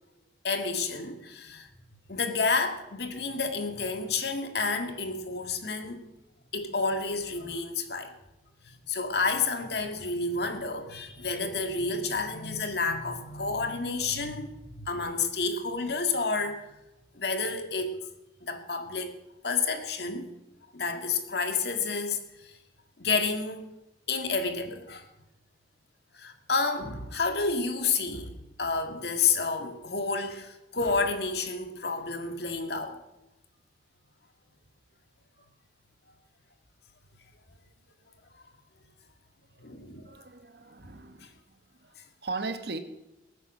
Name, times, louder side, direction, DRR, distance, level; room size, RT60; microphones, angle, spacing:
voice 1, 0.4-1.7 2.1-6.0 6.5-8.1 8.9-16.6 17.1-18.0 18.4-19.1 19.4-20.3 20.7-22.5 23.0-23.7 24.1-25.1 26.1-28.3 28.6-33.0 39.6-40.1, left 4 dB, 65° left, 6 dB, 1.8 m, -30 dB
voice 2, 39.6-41.4 41.8-41.9 42.2-42.8, right 3 dB, 65° right, 8 dB, 1.4 m, -38 dB
20.0 x 9.1 x 6.2 m, 0.95 s
head